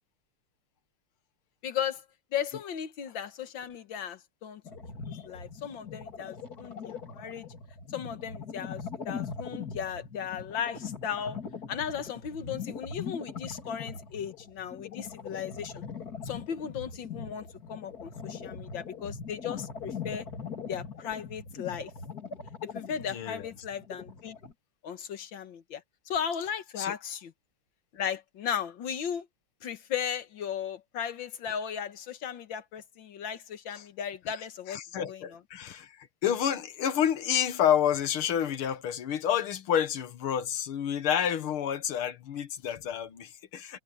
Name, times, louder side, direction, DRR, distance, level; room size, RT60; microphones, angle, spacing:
voice 1, 1.6-2.0 2.3-4.6 5.1-7.5 7.9-11.4 11.7-15.8 16.2-20.3 20.7-21.9 22.7-24.4 24.8-27.3 27.9-29.3 29.6-34.8 35.1-35.4, left 8 dB, 65° left, 1.9 m, -36 dB
sound 1, 4.7-24.5, left 5 dB, 45° left, 3.1 m, -41 dB
voice 2, 23.1-23.5 26.8-26.9 33.8-33.9 34.7-43.8, left 9 dB, 85° left, 2.1 m, -29 dB
omnidirectional pair, 2.3 m